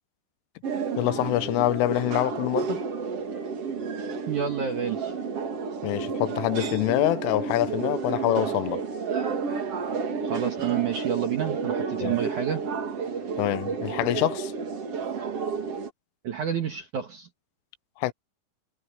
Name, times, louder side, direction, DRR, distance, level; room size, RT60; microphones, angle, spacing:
sound 1, 0.6-15.9, right 5 dB, 55° right, 1.7 m, -31 dB
voice 1, 1.0-2.8 5.8-8.8 12.0-12.2 13.4-14.5 18.0-18.1, left 16 dB, 80° left, 3.3 m, -25 dB
voice 2, 4.3-5.2 10.2-12.7 16.2-17.3, right 8 dB, 75° right, 1.8 m, -29 dB
omnidirectional pair, 5.8 m